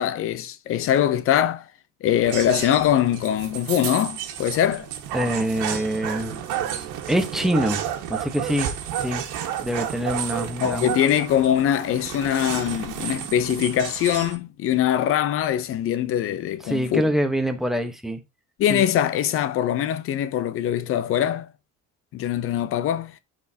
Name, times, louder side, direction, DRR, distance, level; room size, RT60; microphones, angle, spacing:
voice 1, 0.0-1.7 2.0-4.9 10.6-17.1 18.6-21.5 22.1-23.1, left 10 dB, 45° left, 0.7 m, -22 dB
sound 1, 2.2-14.4, right 10 dB, 90° right, 1.7 m, -31 dB
voice 2, 5.1-6.4 7.1-7.8 8.1-8.7 9.0-9.2 9.6-10.9 16.6-18.2 18.7-18.8, equal, ahead, 1.0 m, -25 dB
12.5 x 4.5 x 2.8 m
cardioid pair, 160°, 31 cm